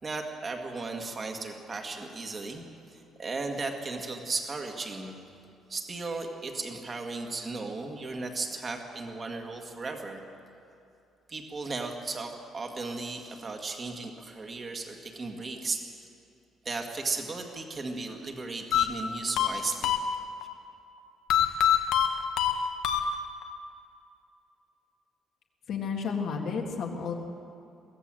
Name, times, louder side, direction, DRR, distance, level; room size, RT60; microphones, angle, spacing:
voice 1, 0.0-5.2 5.7-10.2 11.3-15.8 16.6-19.9, right 3 dB, 25° right, 3 dB, 1.9 m, -35 dB
sound 1, 18.7-20.5 21.3-23.6, left 9 dB, 70° left, 1.3 m, -26 dB
voice 2, 25.7-27.1, left 5 dB, 50° left, 0 dB, 1.9 m, -32 dB
24.0 x 16.5 x 7.7 m, 2.6 s
cardioid pair, 180°, 0 cm